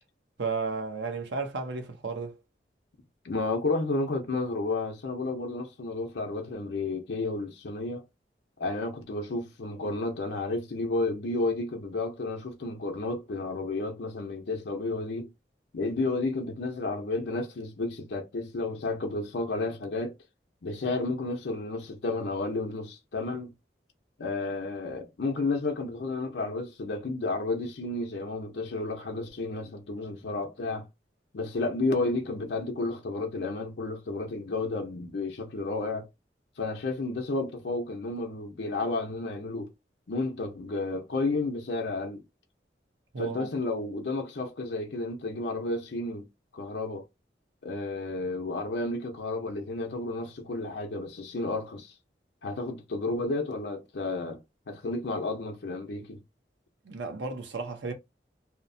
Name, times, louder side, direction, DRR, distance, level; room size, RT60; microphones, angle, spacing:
voice 1, 0.4-2.4 43.1-43.5 56.9-57.9, right 4 dB, 90° right, 0.7 m, -33 dB
voice 2, 3.2-8.0 8.6-15.3 15.7-20.1 20.6-23.5 24.2-30.9 31.3-36.1 36.6-39.7 40.1-42.2 43.2-46.3 46.5-47.0 47.6-51.9 52.4-54.4 54.7-56.2, left 2 dB, 80° left, 0.6 m, -32 dB
2.8 x 2.0 x 2.6 m
head